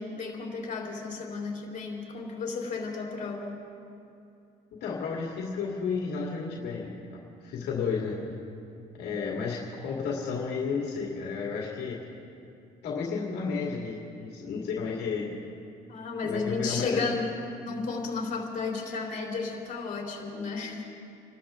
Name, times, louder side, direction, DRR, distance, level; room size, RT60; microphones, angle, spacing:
voice 1, 0.0-3.6 15.9-17.3 17.6-20.9, left 4 dB, 45° left, -1 dB, 3.7 m, -33 dB
voice 2, 4.8-6.9 7.4-8.2 8.9-12.0 12.8-15.3 16.2-17.1, left 5 dB, 70° left, -3 dB, 2.3 m, -32 dB
27.5 x 13.0 x 3.7 m, 2.6 s
cardioid pair, 110°, 17 cm